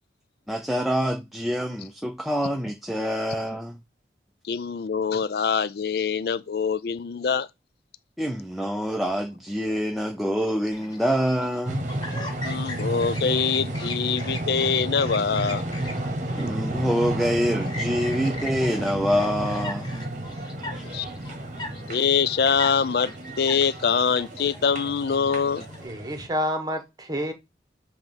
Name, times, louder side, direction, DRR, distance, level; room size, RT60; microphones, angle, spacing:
voice 1, 0.5-3.8 8.2-11.9 16.4-19.9 20.7-20.8, equal, ahead, 0.6 m, -26 dB
voice 2, 4.5-7.5 12.4-15.6 20.9-21.1 21.9-25.6, left 6 dB, 60° left, 0.4 m, -24 dB
Chirp tweet, 10.7-25.9, left 2 dB, 25° left, 1.2 m, -41 dB
sound 1, 11.7-26.3, right 1 dB, 45° right, 1.1 m, -32 dB
voice 3, 25.8-27.3, equal, 20° right, 1.2 m, -28 dB
7.7 x 3.1 x 5.3 m
head